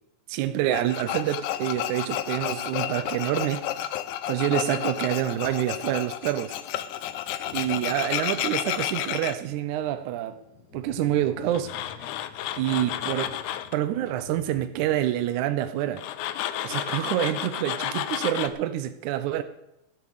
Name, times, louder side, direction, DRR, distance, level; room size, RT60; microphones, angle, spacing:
voice 1, 0.3-3.6 4.3-6.5 7.5-10.4 10.7-11.9 12.6-13.4 13.7-16.1 16.6-19.4, right 12 dB, 80° right, 1.8 m, -27 dB
Tools, 0.7-9.3 11.5-13.8 16.0-18.5, left 12 dB, 80° left, 2.0 m, -31 dB
Thunder, 7.4-15.0, left 5 dB, 35° left, 1.9 m, -49 dB
15.0 x 7.3 x 6.5 m
omnidirectional pair, 4.0 m